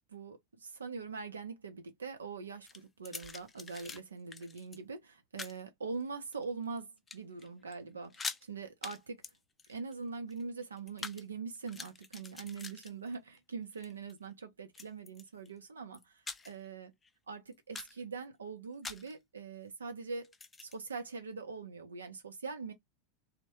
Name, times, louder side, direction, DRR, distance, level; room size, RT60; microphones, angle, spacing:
voice 1, 0.1-2.7 3.0-9.2 9.7-16.0 16.4-16.9 17.3-20.3 20.6-22.7, right 4 dB, 85° right, 0.7 m, -43 dB
sound 1, 2.6-4.0 4.3-4.8 5.4-5.6 6.2-6.8 7.1-7.5 7.7-7.8 8.0-8.4 8.8-9.0 9.2-11.2 11.6-13.4 13.7-14.1 14.7-15.5 15.9-16.7 17.0-17.1 17.5-18.0 18.8-19.1 20.2-20.8, left 4 dB, 20° left, 0.4 m, -45 dB
2.2 x 2.1 x 2.9 m
hypercardioid pair, 90°, 0 cm